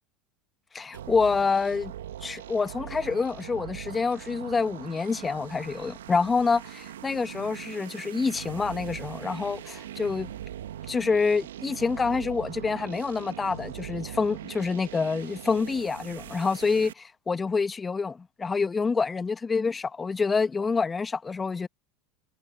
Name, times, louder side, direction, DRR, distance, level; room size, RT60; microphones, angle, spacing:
voice 1, 0.7-1.9 2.2-10.3 10.9-21.7, left 4 dB, 20° left, 1.2 m, -27 dB
sound 1, 0.9-16.9, right 11 dB, 80° right, 1.4 m, -41 dB
hypercardioid pair, 85°, 0 cm